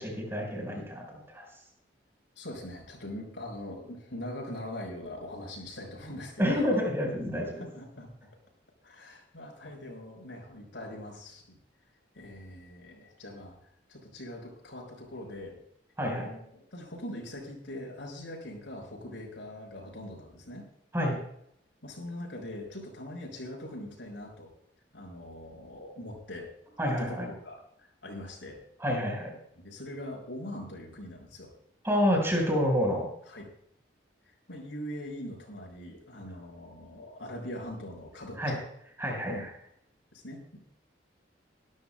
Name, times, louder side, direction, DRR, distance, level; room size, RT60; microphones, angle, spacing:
voice 1, 0.0-1.5 6.4-7.6 16.0-16.3 20.9-21.2 26.8-27.3 28.8-29.3 31.8-33.1 38.4-38.5 39.0-39.5, equal, 15° right, 0 dB, 4.5 m, -28 dB
voice 2, 2.4-6.8 7.5-8.3 8.8-11.6 12.1-13.6 13.9-15.6 16.0-20.7 21.8-24.5 24.9-26.5 27.0-28.6 29.6-31.5 33.3-33.5 34.5-38.6 39.3-39.5 40.1-40.6, left 1 dB, 80° left, 0 dB, 6.1 m, -42 dB
24.0 x 12.5 x 2.2 m, 0.73 s
head